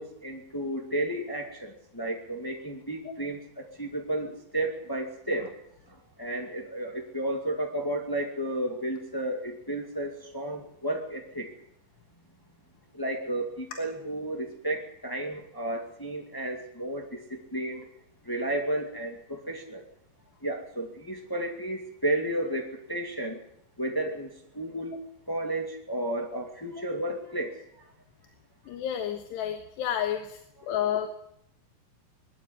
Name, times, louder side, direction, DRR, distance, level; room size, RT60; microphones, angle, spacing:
voice 1, 0.0-5.5 6.2-11.5 12.9-17.8 18.2-19.8 20.4-23.4 23.8-24.3 24.5-24.9 25.3-27.6, right 1 dB, 30° left, 2 dB, 0.3 m, -32 dB
voice 2, 28.7-30.4 30.7-31.1, left 10 dB, 75° left, 6 dB, 3.5 m, -30 dB
21.5 x 13.0 x 9.5 m, 0.74 s
omnidirectional pair, 5.1 m